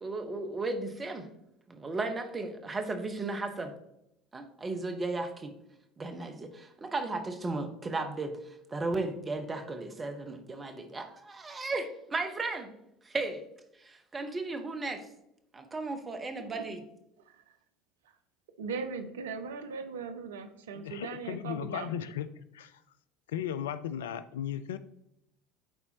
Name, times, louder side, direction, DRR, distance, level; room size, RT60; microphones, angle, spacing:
voice 1, 0.0-1.3 1.7-3.7 4.3-5.5 6.0-12.7 13.0-13.4 13.8-15.1 15.5-16.8, right 3 dB, 20° right, 6 dB, 1.0 m, -35 dB
voice 2, 18.6-21.9, right 5 dB, 70° right, 9 dB, 0.6 m, -39 dB
voice 3, 20.7-22.3 22.5-22.8 23.3-24.8, left 9 dB, 70° left, 13 dB, 0.3 m, -36 dB
11.5 x 4.2 x 2.8 m, 0.81 s
figure-of-eight pair, 65°, 0 cm